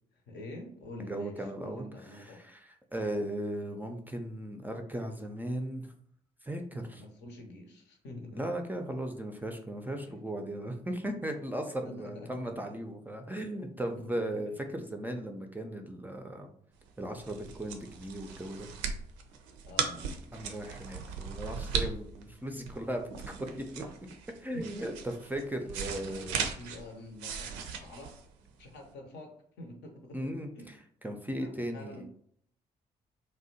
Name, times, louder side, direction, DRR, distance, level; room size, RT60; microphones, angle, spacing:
voice 1, 0.1-2.4 6.9-8.6 10.1-10.2 11.8-12.3 14.0-14.4 19.6-20.1 24.5-24.7 26.0-28.2 28.6-30.7 31.4-32.1, left 1 dB, 60° left, 3 dB, 0.7 m, -46 dB
voice 2, 1.0-5.9 6.4-7.0 8.3-16.5 17.0-18.7 20.3-23.8 24.4-26.5 30.1-32.1, right 1 dB, 10° right, 4 dB, 0.4 m, -37 dB
sound 1, 16.9-28.9, right 6 dB, 70° right, 0.4 m, -38 dB
2.7 x 2.1 x 2.7 m, 0.65 s
figure-of-eight pair, 40°, 20 cm